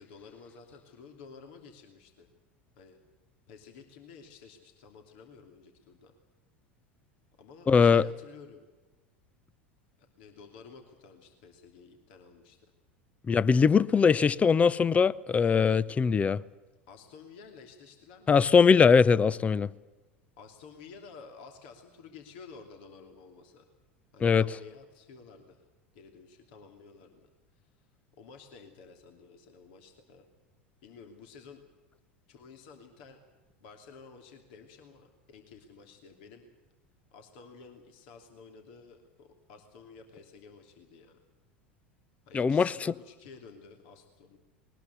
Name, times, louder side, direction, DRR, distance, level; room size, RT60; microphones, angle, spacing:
voice 1, 0.0-2.3 2.8-3.0 3.5-6.1 7.4-8.6 10.0-12.6 16.9-18.4 20.4-23.6 24.1-25.6 25.9-27.9 28.1-30.2 30.8-31.6 32.3-33.2 33.6-36.5 37.1-41.2 42.3-44.4, left 5 dB, 60° left, 2.8 m, -52 dB
voice 2, 7.7-8.0 13.3-16.4 18.3-19.7 24.2-24.4 42.3-42.9, left 6 dB, 25° left, 0.7 m, -21 dB
20.5 x 20.0 x 8.2 m
hypercardioid pair, 80°, 6 cm